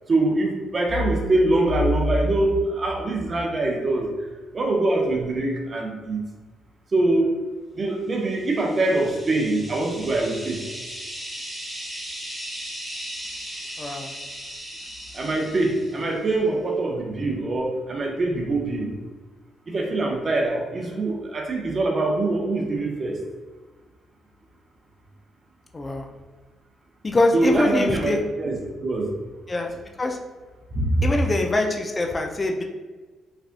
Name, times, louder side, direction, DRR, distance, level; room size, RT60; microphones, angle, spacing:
voice 1, 0.1-4.1 4.5-6.2 6.9-7.4 7.7-10.6 15.1-18.9 19.7-23.2 27.3-28.6 28.8-29.1 30.7-31.1, right 2 dB, 35° right, 1 dB, 0.6 m, -23 dB
sound 1, 8.4-16.2, equal, 10° right, 0.9 m, -37 dB
voice 2, 13.8-14.1 25.7-26.1 27.0-28.2 29.5-29.7 30.0-30.2 31.0-32.6, left 2 dB, 25° left, 3 dB, 0.4 m, -23 dB
3.3 x 2.4 x 2.5 m, 1.3 s
cardioid pair, 90°, 0 cm